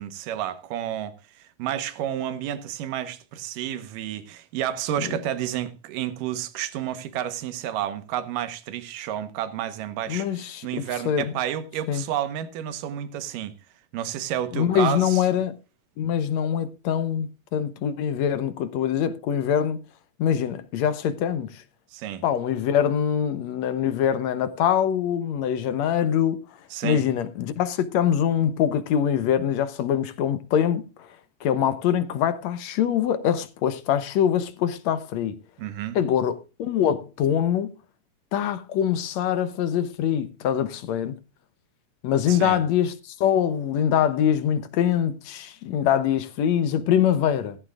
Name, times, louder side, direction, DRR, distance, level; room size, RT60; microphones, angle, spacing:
voice 1, 0.0-13.5 13.9-15.3 21.9-22.2 26.7-27.0 35.6-36.0 42.3-42.6, right 11 dB, 85° right, 2.7 m, -30 dB
voice 2, 10.1-11.3 11.9-12.0 14.5-15.5 16.0-19.8 20.2-21.6 22.2-26.4 26.8-31.1 31.4-35.4 36.0-37.7 38.3-41.2 42.0-47.6, left 9 dB, 70° left, 1.9 m, -24 dB
15.5 x 14.5 x 2.4 m
omnidirectional pair, 3.7 m